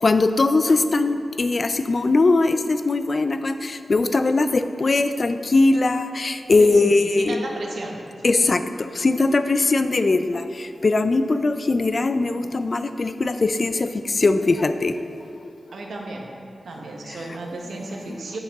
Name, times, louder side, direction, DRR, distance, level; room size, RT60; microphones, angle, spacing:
voice 1, 0.0-7.4 8.2-13.9 14.1-14.9, left 3 dB, 45° left, 10 dB, 0.4 m, -20 dB
voice 2, 6.6-8.0 15.7-16.3 16.6-18.4, right 2 dB, 85° right, 0 dB, 1.1 m, -32 dB
8.6 x 7.2 x 3.6 m, 2.5 s
wide cardioid pair, 115°, 0 cm